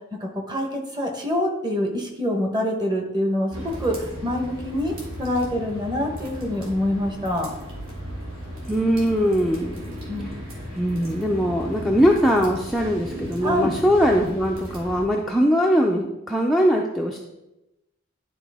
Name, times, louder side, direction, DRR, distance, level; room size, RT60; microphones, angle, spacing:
voice 1, 0.2-7.5 10.1-10.4 13.4-13.7, left 1 dB, 20° right, 2 dB, 1.0 m, -26 dB
sound 1, 3.5-15.0, equal, 70° right, 2.2 m, -36 dB
voice 2, 8.7-9.8 10.2-10.3 10.7-17.2, equal, ahead, -1 dB, 0.4 m, -21 dB
11.0 x 4.1 x 3.5 m, 0.94 s
head